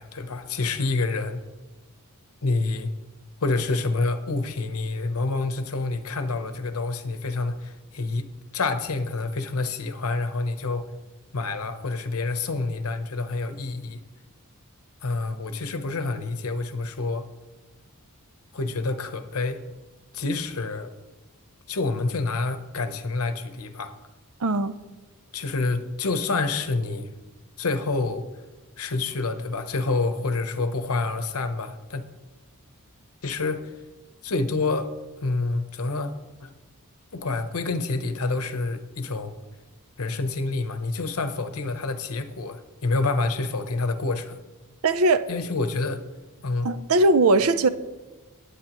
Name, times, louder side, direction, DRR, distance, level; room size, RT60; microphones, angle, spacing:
voice 1, 0.0-1.4 2.4-2.9 3.4-10.8 11.3-14.0 15.0-17.2 18.5-19.6 20.1-20.9 21.7-23.9 25.3-27.1 27.6-28.3 28.8-32.0 33.2-33.6 34.2-34.9 35.2-36.1 36.4-36.5 37.1-39.3 40.0-44.4 45.3-46.1 46.4-46.7, left 3 dB, 75° left, 0.9 m, -27 dB
voice 2, 24.4-24.7 44.8-45.3 46.6-47.7, right 2 dB, 70° right, 0.6 m, -20 dB
18.0 x 8.4 x 3.0 m
head